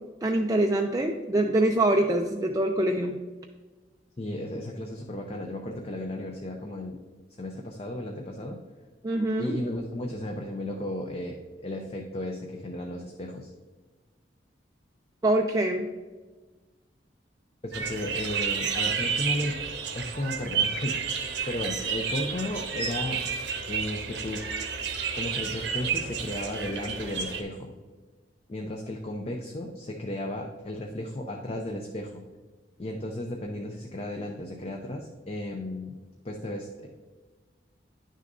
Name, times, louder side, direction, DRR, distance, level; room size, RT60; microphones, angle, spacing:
voice 1, 0.2-3.2 9.0-9.6 15.2-15.9, right 1 dB, 20° right, 3 dB, 0.4 m, -24 dB
voice 2, 4.2-7.0 7.4-8.6 9.4-11.4 11.6-13.5 17.6-19.6 19.9-20.9 21.5-23.2 23.7-24.4 25.1-27.7 28.5-32.2 32.8-35.9 36.2-36.9, left 1 dB, 35° left, 2 dB, 0.6 m, -34 dB
sound 1, 17.7-27.4, right 6 dB, 80° right, 1.0 m, -31 dB
10.0 x 6.4 x 2.6 m, 1.3 s
head